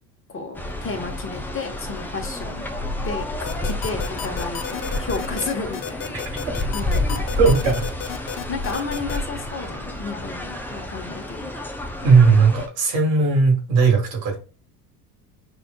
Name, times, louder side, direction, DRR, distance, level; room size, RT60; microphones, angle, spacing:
voice 1, 0.3-2.7 3.0-6.1 6.4-7.2 8.5-11.5, left 4 dB, 25° left, 3 dB, 1.1 m, -32 dB
sound 1, 0.5-12.7, left 1 dB, 5° left, 0.4 m, -29 dB
sound 2, 3.5-9.2, left 9 dB, 50° left, 0.7 m, -32 dB
voice 2, 7.4-7.9 12.0-14.4, right 4 dB, 80° right, 1 dB, 1.8 m, -17 dB
6.1 x 2.5 x 2.3 m, 0.35 s
hypercardioid pair, 80°, 49 cm